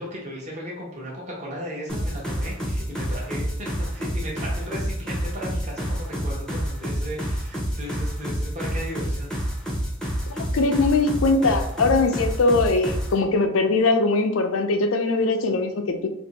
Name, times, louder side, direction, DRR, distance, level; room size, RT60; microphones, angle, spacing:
voice 1, 0.0-9.5, equal, 35° right, -3 dB, 0.8 m, -36 dB
sound 1, 1.9-13.1, equal, 5° left, 0.6 m, -28 dB
voice 2, 10.3-16.1, left 3 dB, 85° left, 6 dB, 0.5 m, -21 dB
2.6 x 2.5 x 4.0 m, 0.81 s
head